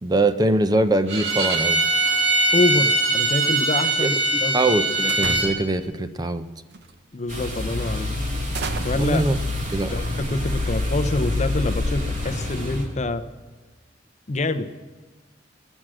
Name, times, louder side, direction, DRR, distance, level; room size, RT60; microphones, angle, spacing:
voice 1, 0.0-1.8 4.0-6.4 8.9-9.4 9.7-9.9, right 2 dB, 20° right, 10 dB, 0.5 m, -22 dB
Bowed string instrument, 1.1-5.5, right 2 dB, 75° right, 2.1 m, -21 dB
voice 2, 2.5-4.5 7.1-8.1 8.8-9.2 9.9-13.2 14.3-14.7, left 2 dB, 40° left, 10 dB, 0.6 m, -26 dB
sound 1, 5.1-5.9 6.7-7.0 7.4-7.6 8.2-11.1, right 3 dB, 60° right, 0.8 m, -34 dB
sound 2, 7.3-12.9, left 2 dB, 45° right, 2.6 m, -27 dB
18.0 x 6.3 x 7.6 m, 1.3 s
head